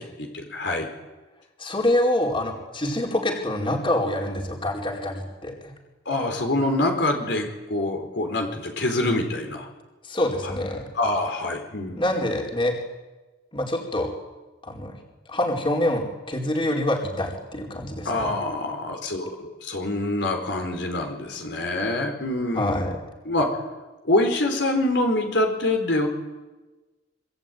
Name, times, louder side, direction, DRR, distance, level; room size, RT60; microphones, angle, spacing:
voice 1, 0.2-0.9 6.1-9.7 10.4-10.5 10.9-12.0 18.0-22.9 23.2-23.5 24.0-26.1, left 2 dB, 70° left, 4 dB, 4.6 m, -25 dB
voice 2, 1.6-5.7 10.0-10.9 11.9-12.7 13.5-14.1 14.6-14.9 15.3-18.3 22.5-23.0, left 1 dB, 30° left, 0 dB, 4.6 m, -26 dB
26.0 x 24.5 x 9.4 m, 1.2 s
head